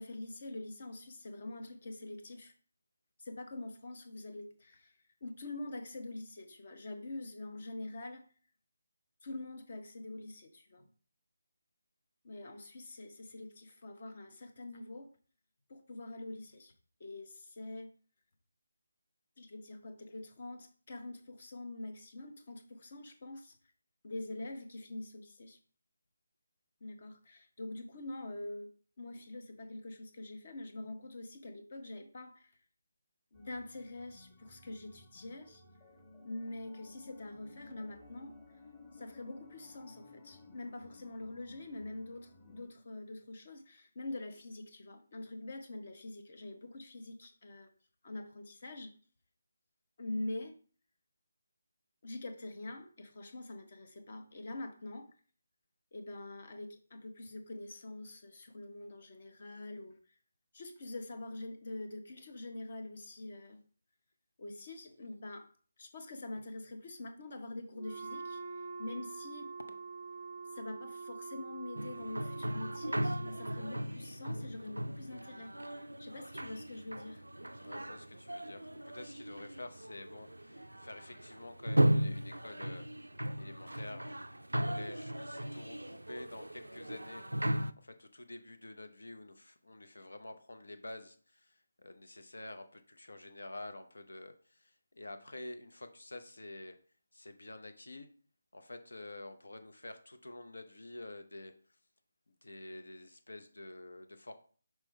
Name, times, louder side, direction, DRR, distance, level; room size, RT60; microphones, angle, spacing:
voice 1, 0.0-2.5 3.2-8.2 9.2-10.9 12.2-15.1 15.7-16.7 17.0-17.9 19.4-23.6 24.0-25.6 26.8-32.6 33.3-35.6 36.2-38.4 38.9-47.7 48.0-48.9 50.0-50.6 52.0-55.1 55.9-60.0 60.5-63.6 64.4-65.5 65.8-69.5 70.5-77.2, left 2 dB, 50° left, 7 dB, 1.1 m, -45 dB
sound 1, 33.3-42.7, left 2 dB, 25° left, 1.5 m, -56 dB
Wind instrument woodwind instrument, 67.7-73.9, right 4 dB, 25° right, 0.5 m, -45 dB
sound 2, 71.8-87.7, right 1 dB, 90° right, 0.3 m, -36 dB
voice 2, 77.6-82.9 83.3-84.3 84.6-87.3 87.8-96.8 97.1-98.1 98.5-101.5 102.4-104.3, left 2 dB, 75° left, 9 dB, 0.8 m, -49 dB
6.1 x 4.7 x 3.3 m, 0.43 s
figure-of-eight pair, 155°, 0 cm